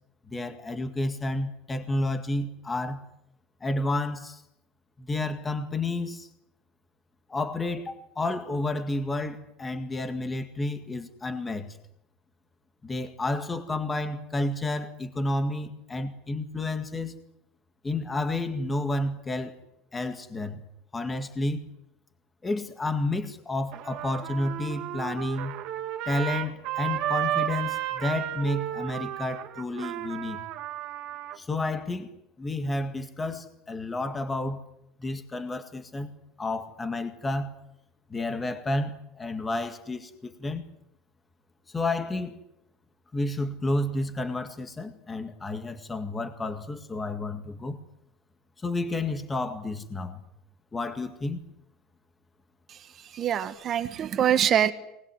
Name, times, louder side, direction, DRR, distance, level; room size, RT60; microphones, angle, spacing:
voice 1, 0.3-3.0 3.6-4.4 5.0-6.3 7.3-11.8 12.8-17.2 17.8-19.6 19.9-20.6 20.9-21.6 22.4-25.6 26.1-30.4 31.4-32.1 32.4-34.6 35.0-36.1 36.4-37.5 38.1-40.7 41.7-42.4 43.1-47.8 48.6-50.2 50.7-51.4, left 2 dB, 15° left, 2.0 m, -31 dB
Trumpet, 23.7-31.4, right 13 dB, 50° right, 2.7 m, -33 dB
voice 2, 52.7-54.7, right 10 dB, 30° right, 1.5 m, -25 dB
23.5 x 20.5 x 9.8 m
cardioid pair, 165°, 0 cm